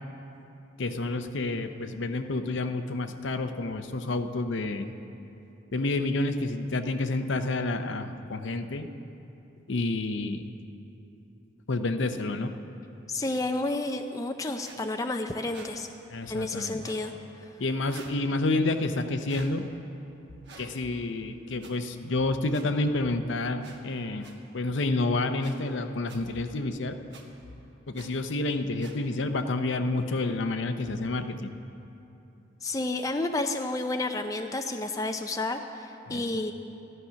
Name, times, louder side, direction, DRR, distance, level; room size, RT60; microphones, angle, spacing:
voice 1, 0.8-4.9 5.7-8.9 9.7-10.5 11.7-12.5 16.1-16.8 17.6-19.7 20.6-27.0 27.9-31.6 36.1-36.4, left 2 dB, 65° left, 8 dB, 0.6 m, -29 dB
voice 2, 13.1-15.9 16.3-17.1 32.6-36.5, left 2 dB, 15° left, 5 dB, 0.4 m, -30 dB
sound 1, 14.6-14.8 15.5-15.7 16.7-17.1 17.9-18.2 19.3-19.5 20.4-20.7 21.6-21.7 22.5-22.6 23.6-23.8 24.2-24.3 25.4-25.6 26.1-26.2 27.1-27.2 27.9-28.1 28.8-29.0, right 4 dB, 55° right, 1.4 m, -48 dB
14.5 x 11.0 x 5.7 m, 2.9 s
head